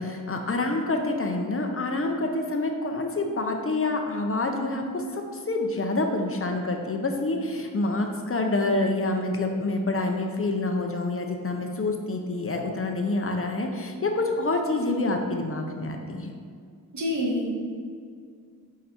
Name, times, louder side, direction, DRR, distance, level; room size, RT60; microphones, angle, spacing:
voice 1, 0.0-16.3, left 2 dB, 40° left, 3 dB, 0.7 m, -27 dB
voice 2, 16.9-17.5, left 1 dB, 55° right, -2 dB, 1.4 m, -26 dB
6.9 x 5.0 x 4.2 m, 2.1 s
wide cardioid pair, 135°, 34 cm